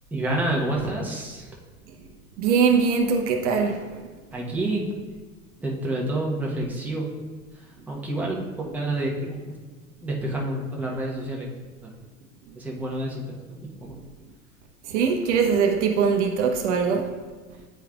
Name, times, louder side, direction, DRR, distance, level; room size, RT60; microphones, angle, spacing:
voice 1, 0.1-1.5 4.3-4.9 5.6-7.1 7.5-9.5 10.0-11.5 11.8-11.9 12.5-13.9, right 1 dB, 5° right, -3 dB, 1.0 m, -29 dB
voice 2, 2.4-3.8 14.9-17.1, right 6 dB, 50° right, 3 dB, 0.8 m, -21 dB
9.0 x 4.6 x 2.3 m, 1.3 s
figure-of-eight pair, 85°, 43 cm